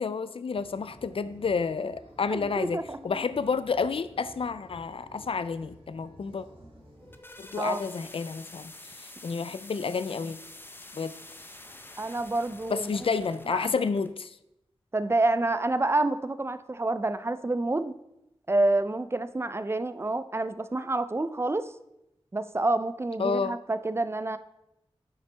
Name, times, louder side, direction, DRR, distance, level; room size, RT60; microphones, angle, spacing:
voice 1, 0.0-6.4 7.4-10.4 10.9-11.1 12.7-14.4 23.2-23.6, left 5 dB, 60° left, 14 dB, 0.4 m, -30 dB
sound 1, 0.5-7.2, equal, 60° right, 2.1 m, -52 dB
voice 2, 2.3-3.0 7.6-7.8 12.0-12.9 13.5-13.7 14.9-17.9 18.5-21.7 22.3-24.4, right 2 dB, 25° right, 12 dB, 0.4 m, -28 dB
sound 2, 6.8-14.1, left 1 dB, 20° left, 0.6 m, -48 dB
9.3 x 5.8 x 3.3 m, 0.85 s
wide cardioid pair, 85°, 11 cm